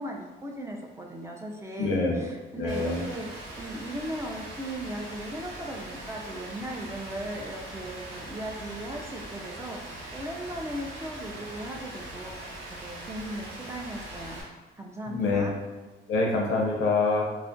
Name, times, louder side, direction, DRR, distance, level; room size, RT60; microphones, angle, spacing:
voice 1, 0.0-14.4 14.8-15.6, right 1 dB, 15° right, 0 dB, 0.3 m, -38 dB
voice 2, 1.8-2.2 2.5-3.0 15.1-15.5 16.1-17.2, left 3 dB, 80° left, -1 dB, 0.6 m, -25 dB
Rain, 2.7-14.4, right 1 dB, 85° right, 0.7 m, -41 dB
2.3 x 2.1 x 2.5 m, 1.2 s
cardioid pair, 90°, 20 cm